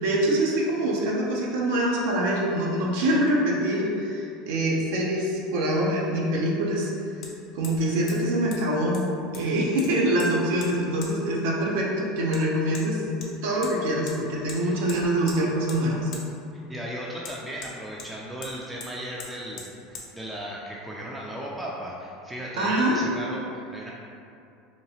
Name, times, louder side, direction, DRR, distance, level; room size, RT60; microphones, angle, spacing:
voice 1, 0.0-6.9 7.5-9.0 9.3-13.0 13.4-16.1 22.6-23.0, right 1 dB, 75° right, -3 dB, 0.5 m, -24 dB
Hammer, 5.3-5.4 7.2-7.3 7.6-7.8 8.1-8.2 8.5-8.6 8.9-9.5 9.8-10.3 10.6-10.7 11.0-11.1 12.3-12.4 12.7-12.9 13.2-13.7 14.1-14.2 14.5-14.6 14.9-15.4 15.7-15.8 16.1-16.2 17.2-18.1 18.4-18.5 18.8-18.9 19.2-19.3 19.6-19.7 19.9-20.1, left 4 dB, 60° left, 0.5 m, -40 dB
voice 2, 16.7-23.9, right 1 dB, 10° right, -4 dB, 0.3 m, -36 dB
2.9 x 2.3 x 2.8 m, 2.5 s
hypercardioid pair, 95°, 0 cm